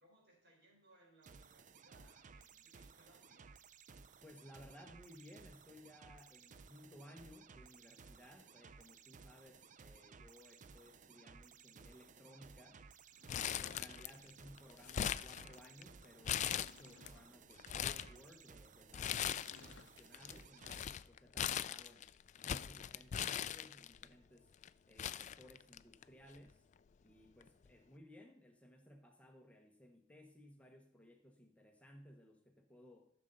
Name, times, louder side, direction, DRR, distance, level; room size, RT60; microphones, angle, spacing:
voice 1, 0.0-3.5 14.1-14.4, right 1 dB, 60° right, 0 dB, 4.1 m, -68 dB
sound 1, 1.2-20.9, right 5 dB, 45° right, 0.5 m, -59 dB
voice 2, 4.2-12.8 13.3-22.1 22.4-24.5 24.9-26.7 27.0-33.1, equal, 5° left, 2 dB, 0.9 m, -60 dB
Sliding door / Wood, 13.1-14.3 15.8-15.9 16.2-17.3 19.1-20.0, left 5 dB, 80° left, 0.6 m, -60 dB
Crumpling crinkling, 13.3-14.3 14.6-15.8 16.2-17.1 17.5-18.1 18.9-19.7 20.0-24.0 24.6-24.7 25.0-26.0 26.3-26.4 27.4-27.7, left 9 dB, 40° left, 0.3 m, -40 dB
13.0 x 6.7 x 3.9 m, 0.72 s
head